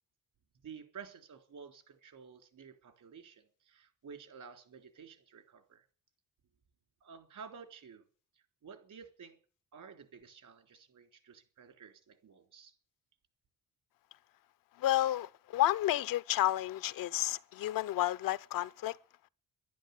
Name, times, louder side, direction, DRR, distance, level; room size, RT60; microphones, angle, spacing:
voice 1, 0.6-5.8 7.0-8.0 8.6-9.4 9.7-12.7, right 6 dB, 65° right, 3.7 m, -52 dB
voice 2, 14.8-19.0, left 14 dB, 85° left, 0.6 m, -31 dB
11.5 x 11.5 x 9.6 m
cardioid pair, 100°, 33 cm